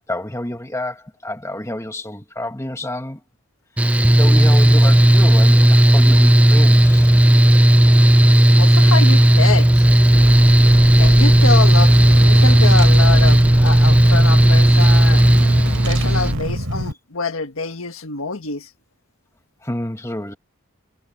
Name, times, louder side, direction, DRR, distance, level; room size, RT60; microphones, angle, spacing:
voice 1, 0.1-3.2 4.1-7.1 19.6-20.4, left 1 dB, 15° left, 1.6 m, -29 dB
Mechanical fan, 3.8-16.3, right 1 dB, 5° right, 0.3 m, -12 dB
voice 2, 8.6-9.8 10.9-15.2 15.8-18.7, left 4 dB, 70° left, 1.5 m, -25 dB
Car / Engine, 9.7-16.9, equal, 60° right, 7.1 m, -29 dB
sound 1, 10.1-16.6, right 1 dB, 85° right, 2.0 m, -28 dB
head